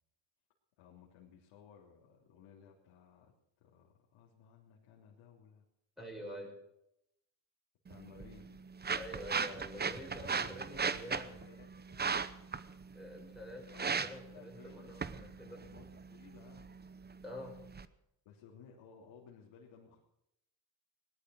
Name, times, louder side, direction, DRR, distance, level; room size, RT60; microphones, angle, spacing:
voice 1, 0.8-3.3 3.6-5.6 6.1-6.5 7.9-8.6 9.7-12.3 13.7-16.7 18.2-20.0, left 7 dB, 85° left, -3 dB, 3.4 m, -58 dB
voice 2, 6.0-6.5 8.1-8.3 9.0-11.4 12.9-15.6 17.2-17.6, equal, ahead, -2 dB, 6.3 m, -47 dB
sound 1, 7.9-17.9, right 5 dB, 20° right, 0.8 m, -39 dB
18.0 x 12.5 x 6.3 m, 0.80 s
cardioid pair, 100°, 47 cm